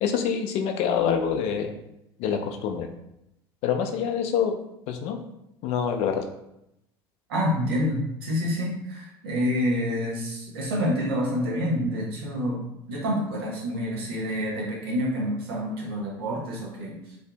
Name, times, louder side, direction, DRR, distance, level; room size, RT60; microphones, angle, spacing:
voice 1, 0.0-1.8 2.2-2.9 3.6-4.5 4.9-5.2 5.6-6.2, left 7 dB, 60° left, 5 dB, 0.4 m, -26 dB
voice 2, 7.3-12.6 12.9-17.2, equal, 80° right, -3 dB, 0.8 m, -28 dB
2.6 x 2.4 x 2.2 m, 0.83 s
hypercardioid pair, 70°, 12 cm